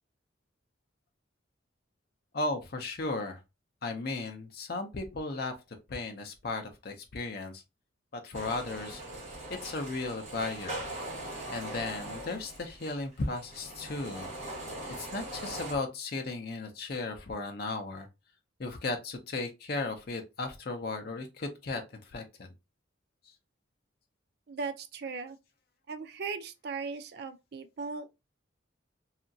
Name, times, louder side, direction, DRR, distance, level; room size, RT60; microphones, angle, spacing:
voice 1, 2.3-3.4 3.8-5.5 5.9-7.6 8.1-9.0 9.6-10.9 11.5-14.3 15.0-18.1 18.6-21.8 22.1-22.5, left 3 dB, 50° left, 0.5 m, -35 dB
sound 1, 8.3-15.7, right 1 dB, 35° right, 1.1 m, -41 dB
voice 2, 24.5-25.4 25.9-28.1, right 4 dB, 50° right, 0.4 m, -38 dB
2.8 x 2.4 x 2.6 m
head